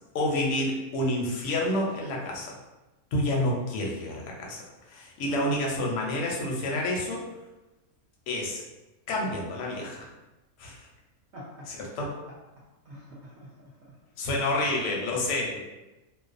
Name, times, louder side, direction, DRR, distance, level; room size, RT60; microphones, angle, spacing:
voice 1, 0.1-2.6 3.1-4.6 4.9-7.3 8.3-8.6 9.1-10.1 10.6-10.9 11.7-12.1 14.2-15.6, left 1 dB, 65° left, -1 dB, 0.8 m, -29 dB
voice 2, 11.3-11.9 12.8-13.5 14.6-15.1 15.4-15.6, equal, 65° right, -7 dB, 0.7 m, -46 dB
2.4 x 2.0 x 2.4 m, 1.0 s
omnidirectional pair, 1.5 m